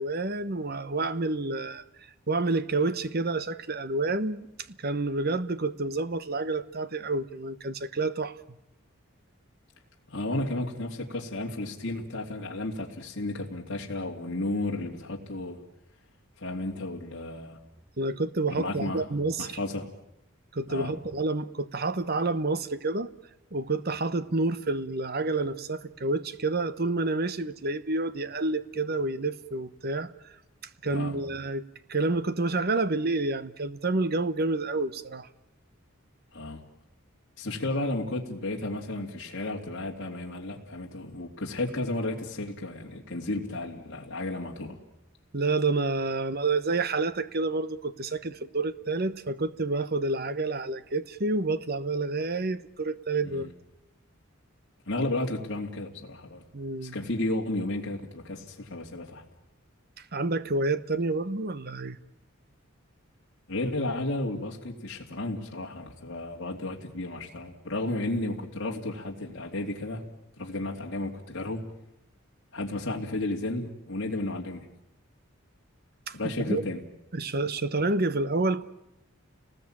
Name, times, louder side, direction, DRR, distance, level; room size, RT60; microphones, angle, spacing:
voice 1, 0.0-1.8 2.3-4.5 4.8-8.4 18.0-19.6 20.5-23.1 23.5-30.1 30.8-31.6 31.9-35.3 45.3-53.5 56.5-56.9 60.1-62.0 76.1-76.6 77.1-78.6, right 3 dB, 45° right, 1.1 m, -29 dB
voice 2, 10.1-15.6 16.4-17.6 18.5-19.0 19.4-19.9 20.7-20.9 30.9-31.2 36.3-36.6 37.4-44.8 53.2-53.5 54.9-56.4 56.8-59.2 63.5-70.0 70.4-71.6 72.5-74.7 76.1-76.8, left 2 dB, 60° left, 2.9 m, -33 dB
30.0 x 20.0 x 8.9 m
head